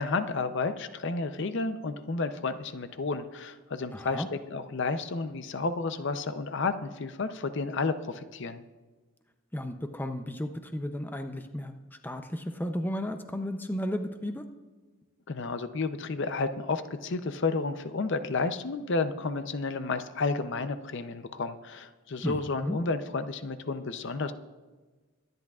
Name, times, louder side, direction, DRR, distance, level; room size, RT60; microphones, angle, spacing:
voice 1, 0.0-4.2 4.5-8.6 15.3-24.3, left 3 dB, 55° left, 10 dB, 0.6 m, -31 dB
voice 2, 3.9-4.3 9.5-14.4 22.2-22.4 22.6-22.8, left 1 dB, 10° left, 6 dB, 0.5 m, -34 dB
23.0 x 10.5 x 2.4 m, 1.3 s
head